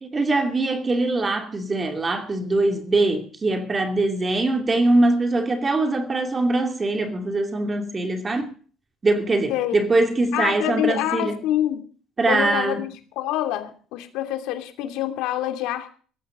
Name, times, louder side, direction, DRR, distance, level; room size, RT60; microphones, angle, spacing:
voice 1, 0.0-8.5 9.0-11.3 12.2-12.8, right 2 dB, 15° right, 2.6 m, -22 dB
voice 2, 9.5-9.8 10.3-11.8 12.3-12.9 13.2-15.9, left 12 dB, 75° left, 2.8 m, -26 dB
18.0 x 15.0 x 3.8 m
cardioid pair, 175°, 0 cm